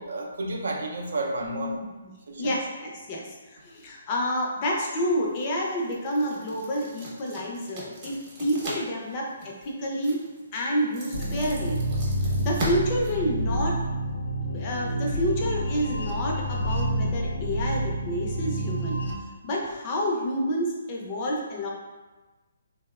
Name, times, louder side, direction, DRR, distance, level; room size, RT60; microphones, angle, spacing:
voice 1, 0.0-1.8 2.3-2.6, right 2 dB, 75° right, 1 dB, 0.4 m, -31 dB
voice 2, 1.4-2.1 2.4-10.2 10.5-11.8 12.4-13.8 14.4-19.0 19.4-21.7, equal, 35° left, -2 dB, 0.5 m, -29 dB
sound 1, 4.9-13.9, right 1 dB, 30° right, 0.8 m, -40 dB
sound 2, 11.1-19.1, right 1 dB, 85° left, 0.5 m, -28 dB
2.8 x 2.0 x 2.3 m, 1.2 s
hypercardioid pair, 150°, 0 cm